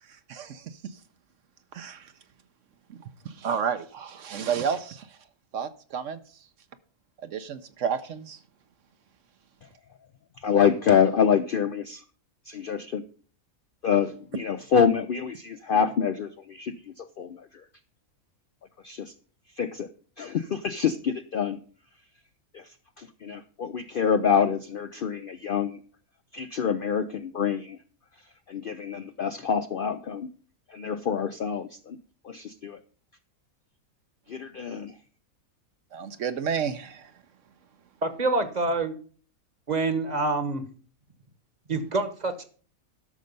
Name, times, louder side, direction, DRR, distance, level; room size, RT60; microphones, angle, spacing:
voice 1, 0.3-0.8 1.7-2.1 2.9-3.0 3.2-5.1 5.5-6.2 7.2-8.4 35.9-37.1, right 7 dB, 65° right, 10 dB, 1.0 m, -31 dB
voice 2, 10.4-12.0 12.5-13.0 13.8-17.5 18.8-19.1 19.6-19.9 20.2-21.6 22.5-22.6 23.0-25.8 26.3-27.8 28.5-30.3 30.7-32.0 32.2-32.8 34.3-34.9, left 7 dB, 60° left, 10 dB, 0.5 m, -26 dB
voice 3, 38.0-39.0 39.7-40.6 41.7-42.4, right 3 dB, 35° right, 10 dB, 1.1 m, -26 dB
12.0 x 6.5 x 5.3 m, 0.43 s
omnidirectional pair, 1.5 m